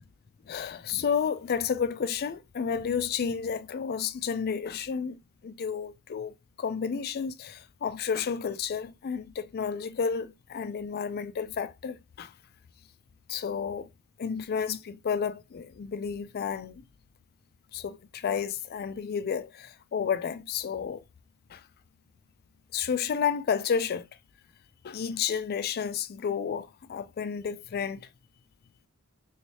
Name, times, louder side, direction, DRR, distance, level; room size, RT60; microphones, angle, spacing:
voice 1, 0.5-5.2 5.4-12.3 13.3-13.9 14.2-16.8 17.7-21.0 21.5-21.6 22.7-24.1 24.8-28.1, left 7 dB, 45° left, 0.4 m, -31 dB
3.1 x 3.1 x 2.8 m
head